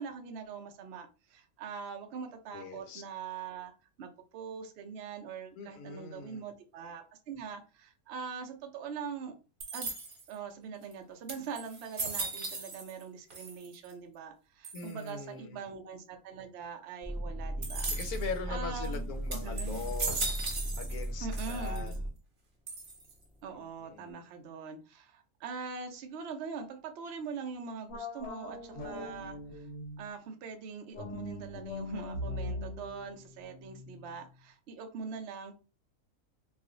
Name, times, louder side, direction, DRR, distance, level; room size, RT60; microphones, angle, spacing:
voice 1, 0.0-3.7 4.0-9.3 9.7-9.9 10.3-17.9 18.5-19.1 19.4-20.0 21.2-22.1 23.4-29.7 30.0-35.5, right 5 dB, 75° right, 4 dB, 0.6 m, -42 dB
voice 2, 2.5-3.0 5.6-6.5 14.7-15.6 17.9-21.9 23.5-24.3, left 5 dB, 75° left, 6 dB, 1.0 m, -41 dB
sound 1, 9.6-10.3 10.9-11.0 11.3-13.0 13.3-13.9 14.6-15.1 17.6-18.3 18.8-19.0 19.3-21.1 21.3-22.0 22.7-23.2, right 3 dB, 40° right, 0.9 m, -38 dB
sound 2, 17.0-22.1 22.8-23.5, right 1 dB, 5° right, 0.4 m, -37 dB
sound 3, 27.9-30.2 30.9-34.3, left 2 dB, 55° left, 0.9 m, -41 dB
2.4 x 2.4 x 3.7 m, 0.34 s
omnidirectional pair, 1.6 m